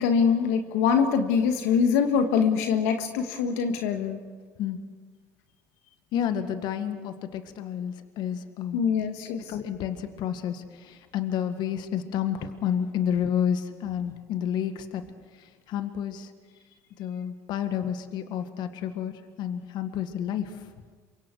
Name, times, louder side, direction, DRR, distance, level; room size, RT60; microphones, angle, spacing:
voice 1, 0.0-4.2 8.7-9.5, left 6 dB, 80° left, 5 dB, 1.6 m, -24 dB
voice 2, 6.1-8.8 9.3-15.0 15.7-16.3 17.0-19.1 19.4-20.7, left 9 dB, 60° left, 8 dB, 1.7 m, -30 dB
27.5 x 24.5 x 4.7 m, 1.5 s
supercardioid pair, 80°, 8 cm